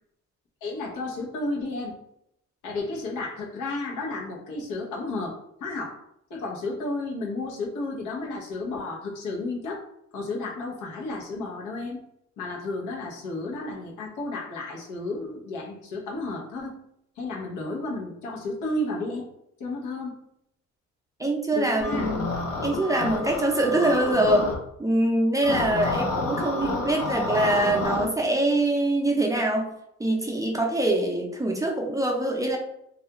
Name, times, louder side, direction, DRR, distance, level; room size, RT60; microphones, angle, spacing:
voice 1, 0.6-1.9 2.6-6.0 6.3-9.9 10.1-12.0 12.4-16.8 17.2-19.3 19.6-20.2 21.5-22.1, left 2 dB, 85° left, -1 dB, 0.9 m, -32 dB
voice 2, 21.2-22.3 22.6-24.5 24.8-29.7 30.0-32.6, right 1 dB, 10° right, 0 dB, 0.5 m, -24 dB
sound 1, 21.8-24.6 25.4-28.1, left 3 dB, 55° left, 0.7 m, -29 dB
2.4 x 2.2 x 2.9 m, 0.76 s
cardioid pair, 90°, 30 cm